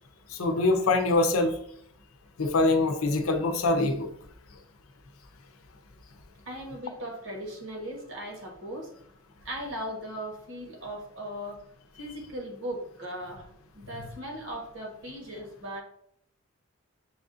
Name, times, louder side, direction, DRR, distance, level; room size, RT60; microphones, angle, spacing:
voice 1, 0.4-1.6 2.4-4.1 14.0-14.1, left 2 dB, 80° left, 5 dB, 0.6 m, -24 dB
voice 2, 6.5-8.9 9.4-11.6 12.0-13.4 13.7-15.8, equal, 60° right, 0 dB, 1.3 m, -38 dB
6.9 x 2.4 x 2.6 m, 0.69 s
head